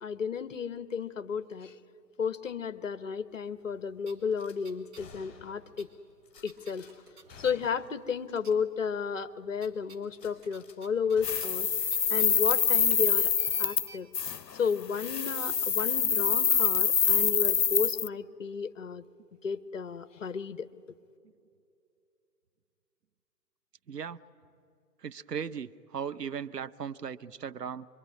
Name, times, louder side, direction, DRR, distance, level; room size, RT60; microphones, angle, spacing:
voice 1, 0.0-1.7 2.2-5.9 6.4-6.9 7.3-11.7 12.1-13.3 13.6-14.1 14.6-19.0 19.4-20.7, left 6 dB, 50° left, 13 dB, 1.1 m, -33 dB
sound 1, 3.6-3.7 4.0-5.1 5.3-8.0 8.3-8.9 9.2-14.0, right 4 dB, 30° right, 2.5 m, -54 dB
Gunshot gunfire / Glass, 4.3-4.6 5.0-5.7 6.3-6.9 7.3-8.0 8.3-8.4 8.8-8.9 10.1-10.8 11.2-13.0 13.3-13.5, left 4 dB, 25° left, 5.5 m, -54 dB
sound 2, 11.2-13.9 14.1-14.4 14.9-18.1, left 7 dB, 75° left, 0.8 m, -26 dB
voice 2, 23.9-24.2 25.0-27.9, right 7 dB, 70° right, 13 dB, 0.9 m, -37 dB
26.0 x 23.0 x 9.8 m, 2.6 s
figure-of-eight pair, 135°, 49 cm